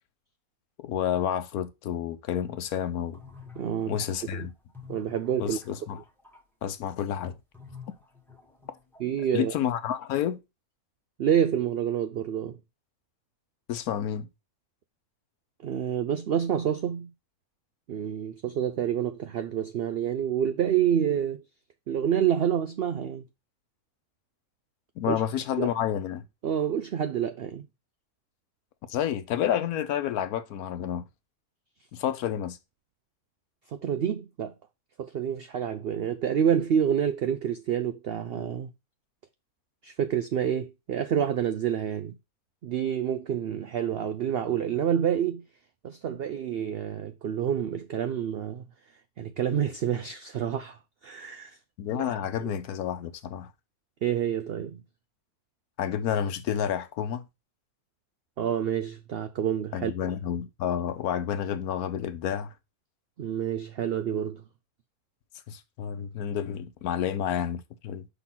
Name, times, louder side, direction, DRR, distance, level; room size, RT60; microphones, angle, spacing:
voice 1, 0.8-3.2 3.9-4.5 5.4-6.0 6.6-7.4 9.3-10.4 13.7-14.3 25.0-26.2 28.9-31.0 31.9-32.6 51.8-53.5 55.8-57.2 59.7-62.5 65.5-68.1, left 9 dB, 80° left, 1.1 m, -30 dB
sound 1, 2.9-6.4 7.5-9.2, left 5 dB, ahead, 1.3 m, -50 dB
voice 2, 3.6-4.0 4.3-4.5 4.9-5.6 9.0-9.5 11.2-12.6 15.6-17.1 17.9-21.4 21.9-23.2 25.1-25.2 25.6-25.7 26.4-27.6 33.7-34.5 35.0-38.7 39.8-42.1 42.6-45.4 45.8-48.6 49.2-51.6 51.9-52.5 54.0-54.8 58.4-59.9 63.2-64.4, right 9 dB, 90° right, 0.5 m, -28 dB
5.7 x 4.0 x 5.7 m
omnidirectional pair, 1.6 m